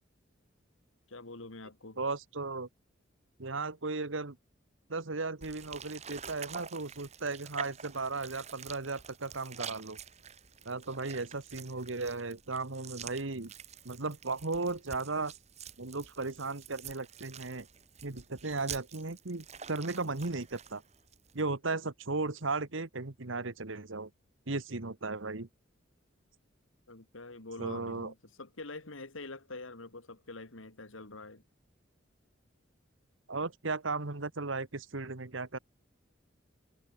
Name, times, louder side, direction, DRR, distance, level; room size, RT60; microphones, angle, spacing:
voice 1, 1.1-2.0 26.9-31.4, left 2 dB, 85° left, 2.4 m, -45 dB
voice 2, 2.0-2.7 3.4-4.4 4.9-10.0 10.6-13.5 13.8-15.3 15.8-17.7 18.0-20.8 21.3-24.1 24.5-25.5 27.6-28.1 33.3-35.6, right 3 dB, 80° right, 1.5 m, -36 dB
sound 1, 5.4-21.4, right 7 dB, 35° right, 1.7 m, -48 dB
head